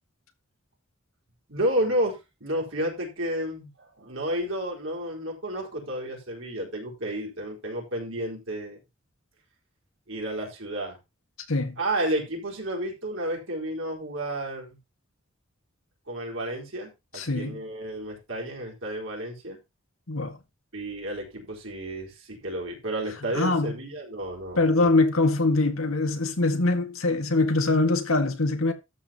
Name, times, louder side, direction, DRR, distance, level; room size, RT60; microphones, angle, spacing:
voice 1, 1.5-8.8 10.1-11.0 11.8-14.7 16.1-19.6 20.7-24.9, right 1 dB, 70° right, 4.3 m, -31 dB
voice 2, 17.2-17.6 20.1-20.4 23.3-23.7 24.6-28.7, left 2 dB, 90° left, 1.8 m, -23 dB
13.0 x 7.5 x 2.9 m
head